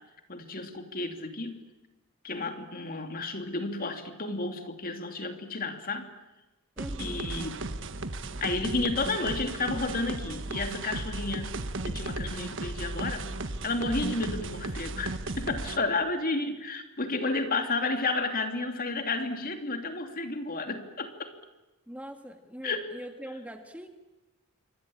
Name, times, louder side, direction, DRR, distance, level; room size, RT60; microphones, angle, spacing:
voice 1, 0.3-1.6 2.2-6.1 7.0-7.6 8.4-11.6 11.9-13.3 13.6-21.3 22.6-22.9, left 3 dB, 40° left, 6 dB, 2.9 m, -32 dB
voice 2, 6.8-7.2 21.9-23.9, right 1 dB, 5° right, 5 dB, 1.9 m, -42 dB
sound 1, 6.8-15.8, right 2 dB, 60° right, 1.4 m, -35 dB
27.5 x 25.0 x 8.7 m, 1.1 s
head